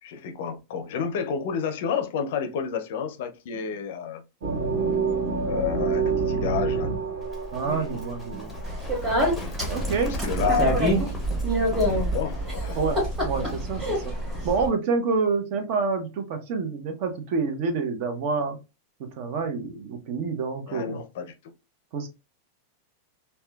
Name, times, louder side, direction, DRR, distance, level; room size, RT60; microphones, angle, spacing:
voice 1, 0.0-4.2 5.5-6.9 7.6-7.9 9.3-9.6 10.0-10.8 11.8-12.8 20.7-21.5, left 7 dB, 65° left, 0.4 m, -30 dB
sound 1, 4.4-9.0, right 5 dB, 75° right, 1.1 m, -27 dB
Livestock farm animals working animals, 7.2-14.6, left 1 dB, 5° left, 0.6 m, -37 dB
voice 2, 7.5-8.5 9.7-10.1 12.8-14.0 14.4-18.6 19.0-21.0 21.9-22.1, right 4 dB, 50° right, 0.6 m, -28 dB
Speech, 8.6-14.7, equal, 20° right, 1.4 m, -26 dB
2.8 x 2.1 x 2.2 m
supercardioid pair, 150°, 0 cm